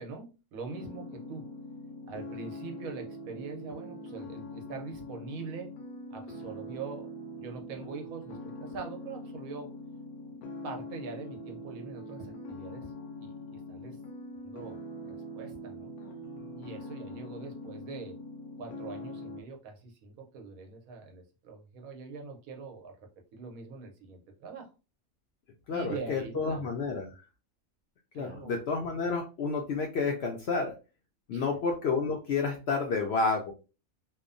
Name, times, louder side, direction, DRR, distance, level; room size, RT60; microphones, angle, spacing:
voice 1, 0.0-1.5 2.1-5.7 6.1-7.1 7.4-9.7 10.6-12.9 13.2-14.0 14.4-14.8 15.1-15.9 16.6-18.2 18.6-24.7 25.7-26.7 28.1-28.5 31.3-31.6, right 4 dB, 80° right, 2 dB, 1.1 m, -43 dB
sound 1, 0.7-19.4, left 1 dB, 85° left, 1.1 m, -43 dB
voice 2, 25.7-27.1 28.1-30.7 31.3-33.5, left 4 dB, 65° left, 2 dB, 0.6 m, -30 dB
2.9 x 2.1 x 2.5 m, 0.31 s
omnidirectional pair, 1.5 m